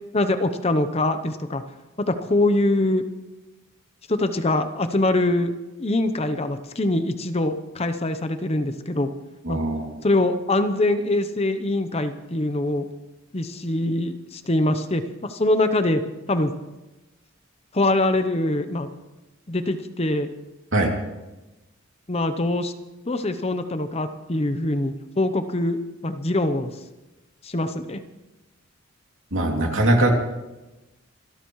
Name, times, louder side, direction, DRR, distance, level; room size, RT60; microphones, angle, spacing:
voice 1, 0.1-1.6 2.0-3.0 4.1-5.5 5.8-9.1 9.5-9.6 10.0-12.9 13.3-16.0 16.3-16.5 17.7-18.9 19.5-20.3 22.1-22.7 23.1-25.8 26.0-26.7 27.4-28.0, left 2 dB, 30° left, 9 dB, 0.8 m, -23 dB
voice 2, 9.4-9.9 20.7-20.9 29.3-30.1, right 1 dB, 65° right, 1 dB, 2.6 m, -21 dB
26.0 x 13.0 x 3.1 m, 1.0 s
head